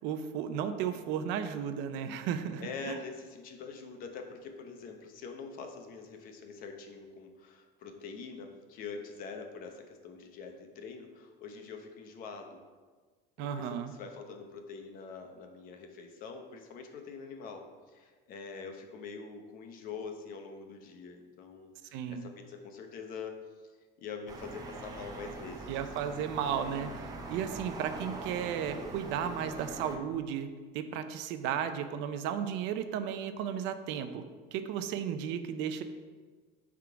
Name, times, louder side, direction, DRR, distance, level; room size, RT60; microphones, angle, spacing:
voice 1, 0.0-3.0 13.4-13.9 21.9-22.3 25.7-30.5 30.7-34.2 34.5-35.8, right 8 dB, 65° right, 9 dB, 0.6 m, -34 dB
voice 2, 2.6-12.6 13.4-23.4 24.0-25.9, left 5 dB, 45° left, 4 dB, 0.9 m, -44 dB
sound 1, 24.3-30.0, right 3 dB, 20° right, 0.7 m, -42 dB
9.5 x 3.7 x 4.7 m, 1.4 s
cardioid pair, 175°, 20 cm